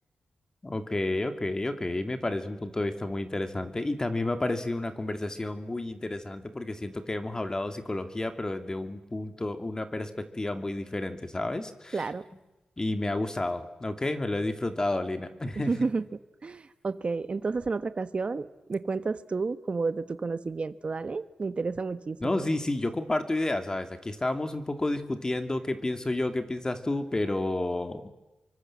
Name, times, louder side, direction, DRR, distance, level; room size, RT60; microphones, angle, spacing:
voice 1, 0.6-12.0 12.8-15.7 22.2-28.0, left 2 dB, 25° left, 7 dB, 2.7 m, -31 dB
voice 2, 11.9-12.2 15.6-16.1 16.4-22.5, right 4 dB, 45° right, 12 dB, 1.4 m, -31 dB
28.5 x 24.0 x 7.5 m, 1.0 s
wide cardioid pair, 90°, 3 cm